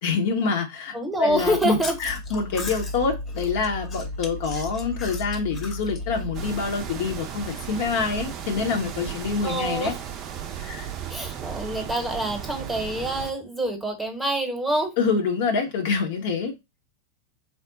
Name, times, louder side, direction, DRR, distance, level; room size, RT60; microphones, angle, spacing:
voice 1, 0.0-9.9 10.6-10.9 15.0-16.5, left 5 dB, 50° left, 0.8 m, -26 dB
voice 2, 0.9-2.0 9.4-10.0 11.1-14.9, right 1 dB, 5° right, 1.0 m, -26 dB
Chewing mastication, 1.3-6.6, left 2 dB, 25° left, 0.9 m, -34 dB
sound 1, 6.3-13.3, right 9 dB, 35° right, 0.5 m, -35 dB
3.6 x 2.1 x 3.8 m
figure-of-eight pair, 90°, 0 cm